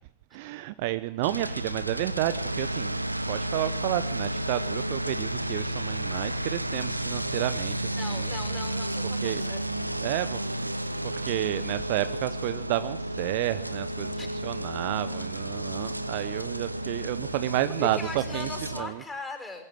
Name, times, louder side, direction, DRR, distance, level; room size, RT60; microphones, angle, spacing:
voice 1, 0.3-8.3 9.2-9.4 10.0-10.8 11.0-18.5 18.7-19.0, right 17 dB, 50° right, 14 dB, 0.8 m, -31 dB
sound 1, 1.2-18.8, right 1 dB, 85° right, 1.0 m, -32 dB
voice 2, 8.0-9.7 14.2-14.3 17.8-19.6, left 3 dB, 10° left, 3 dB, 5.8 m, -39 dB
21.0 x 15.0 x 9.7 m, 0.82 s
figure-of-eight pair, 90°, 0 cm